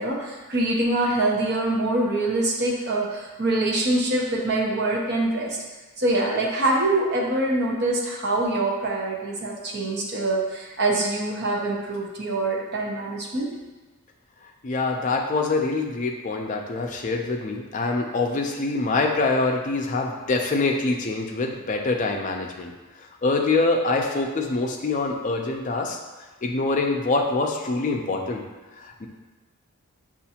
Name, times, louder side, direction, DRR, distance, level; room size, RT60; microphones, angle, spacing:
voice 1, 0.0-5.6 6.0-13.5, right 2 dB, 50° right, -2 dB, 0.7 m, -24 dB
voice 2, 14.6-22.7 23.2-26.0 26.4-28.4 28.8-29.1, left 3 dB, 35° left, 2 dB, 0.4 m, -25 dB
6.5 x 2.5 x 2.8 m, 1.3 s
head